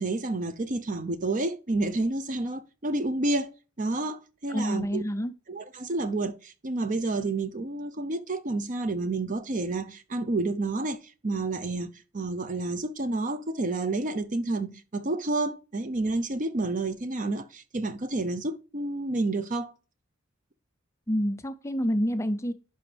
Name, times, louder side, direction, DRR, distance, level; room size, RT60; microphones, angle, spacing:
voice 1, 0.0-3.5 3.8-5.0 5.5-11.0 11.2-19.7, right 2 dB, 40° right, 0.7 m, -30 dB
voice 2, 4.5-5.3 21.1-22.5, equal, 15° left, 0.5 m, -28 dB
11.0 x 5.1 x 3.3 m
head